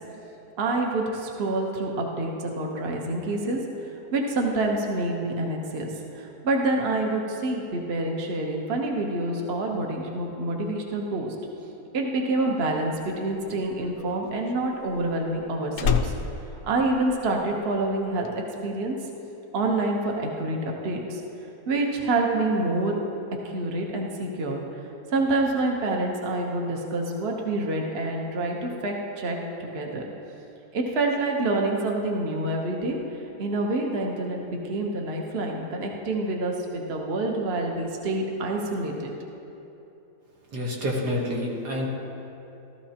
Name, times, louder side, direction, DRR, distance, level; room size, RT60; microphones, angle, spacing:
voice 1, 0.6-3.6 3.9-11.4 11.9-16.1 16.6-18.9 19.5-21.2 21.7-23.0 23.4-24.6 25.1-30.0 30.7-33.0 33.4-39.1, right 2 dB, 45° right, 1 dB, 1.2 m, -27 dB
Slam, 12.8-17.6 17.9-18.3, left 6 dB, 70° left, 1.1 m, -30 dB
voice 2, 40.5-41.9, left 1 dB, 90° right, -2 dB, 2.2 m, -28 dB
14.5 x 13.5 x 2.9 m, 2.9 s
omnidirectional pair, 1.7 m